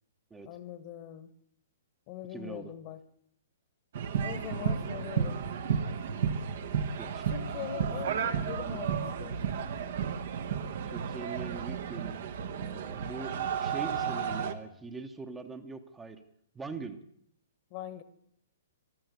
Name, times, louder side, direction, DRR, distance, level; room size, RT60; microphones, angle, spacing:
voice 1, 0.4-1.3 2.1-3.0 4.2-5.5 7.3-9.4 17.7-18.0, left 10 dB, 40° left, 1.4 m, -41 dB
voice 2, 2.3-2.7 7.0-7.2 10.8-12.2 12.5-16.2 16.5-17.0, right 4 dB, 10° right, 1.1 m, -42 dB
sound 1, 3.9-14.5, right 7 dB, 55° right, 1.3 m, -33 dB
13.5 x 12.5 x 8.1 m
figure-of-eight pair, 115°, 0 cm